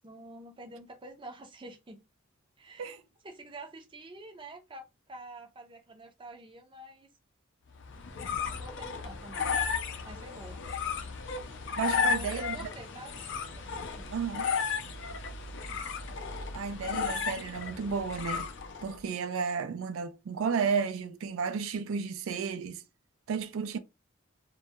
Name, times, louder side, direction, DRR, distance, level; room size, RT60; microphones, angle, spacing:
voice 1, 0.0-2.0 2.6-7.1 8.2-9.5 10.0-10.7 11.9-13.3 13.6-14.1, right 2 dB, 25° right, 0.5 m, -48 dB
sound 1, 7.8-19.0, left 6 dB, 60° left, 0.4 m, -34 dB
voice 2, 11.8-12.6 14.1-14.5 16.5-18.5 18.8-22.8 23.3-23.8, right 5 dB, 80° right, 0.3 m, -32 dB
2.2 x 2.1 x 2.7 m
head